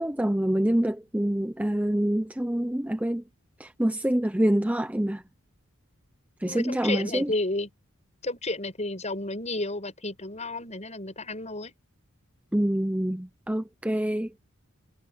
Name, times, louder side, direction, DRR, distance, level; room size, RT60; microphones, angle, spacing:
voice 1, 0.0-3.2 3.6-5.2 6.4-7.3 12.5-14.3, right 1 dB, 5° right, 0.6 m, -26 dB
voice 2, 6.5-7.7 8.2-11.7, left 2 dB, 30° left, 7.6 m, -32 dB
head